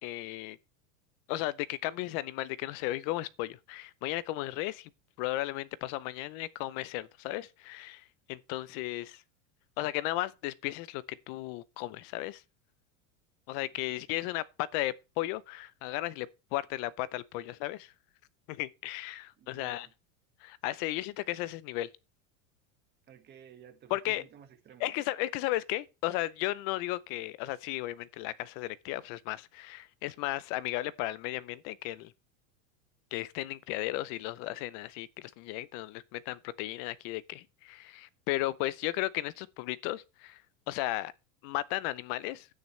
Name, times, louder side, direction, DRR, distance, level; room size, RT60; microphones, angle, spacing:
voice 1, 0.0-0.6 1.3-4.9 5.2-9.2 9.8-12.4 13.5-17.9 18.5-19.9 20.4-21.9 23.9-24.2 24.8-32.1 33.1-40.4 40.7-41.1 41.4-42.5, left 16 dB, 40° left, 0.5 m, -35 dB
voice 2, 19.4-19.9 23.1-25.0, right 9 dB, 25° right, 1.6 m, -54 dB
10.0 x 9.1 x 3.2 m
supercardioid pair, 160°, 43 cm